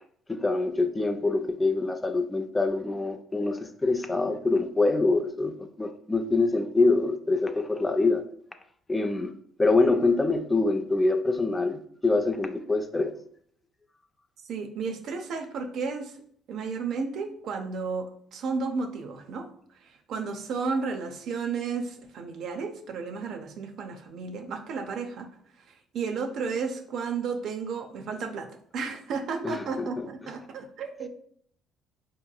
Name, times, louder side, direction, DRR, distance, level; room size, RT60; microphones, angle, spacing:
voice 1, 0.3-8.2 8.9-9.3 9.6-13.1 29.4-30.1, left 3 dB, 20° left, 7 dB, 0.4 m, -25 dB
voice 2, 14.5-16.2 16.5-19.5 19.8-25.3 25.9-31.1, right 5 dB, 65° right, 6 dB, 0.5 m, -33 dB
4.4 x 2.9 x 2.3 m, 0.62 s
supercardioid pair, 70°, 0 cm